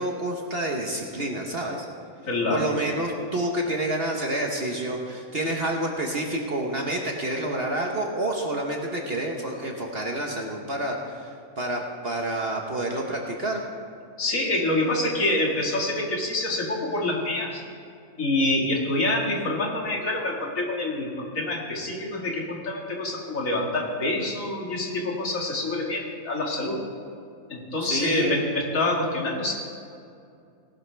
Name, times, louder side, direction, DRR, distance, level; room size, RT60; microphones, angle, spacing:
voice 1, 0.0-1.9 2.5-11.3 11.6-13.6 27.8-28.4, right 1 dB, 40° right, 1 dB, 1.2 m, -28 dB
voice 2, 2.3-2.7 14.2-17.6 18.2-26.8 27.5-29.5, left 2 dB, 55° left, -1 dB, 2.3 m, -26 dB
18.5 x 11.5 x 3.4 m, 2.4 s
omnidirectional pair, 1.7 m